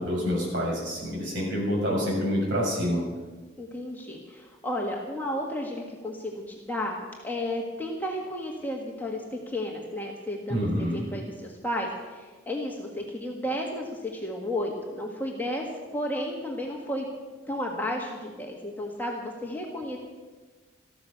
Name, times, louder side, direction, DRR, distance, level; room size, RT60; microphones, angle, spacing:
voice 1, 0.0-3.0 10.5-11.0, equal, 70° right, -4 dB, 7.0 m, -27 dB
voice 2, 3.6-15.7 15.9-17.1 17.5-20.0, left 1 dB, 10° left, 0 dB, 1.6 m, -33 dB
14.0 x 13.0 x 6.9 m, 1.3 s
head